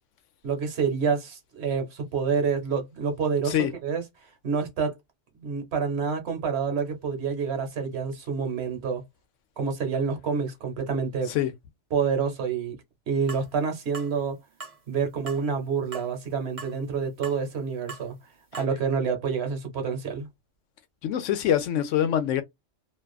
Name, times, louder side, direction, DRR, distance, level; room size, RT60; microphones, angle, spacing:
voice 1, 0.4-3.5 3.8-4.0 4.4-5.0 5.4-9.0 9.6-11.3 11.9-12.8 13.1-14.4 14.9-18.1 18.6-20.3, right 5 dB, 60° right, 1.1 m, -28 dB
sound 1, 13.3-13.5 13.9-14.1 14.6-14.8 15.3-15.4 15.9-16.1 16.6-16.8 17.2-17.4 17.9-18.1 18.5-18.6, right 4 dB, 35° right, 0.7 m, -40 dB
voice 2, 21.0-22.4, left 10 dB, 85° left, 0.9 m, -24 dB
2.5 x 2.3 x 2.3 m
omnidirectional pair, 1.3 m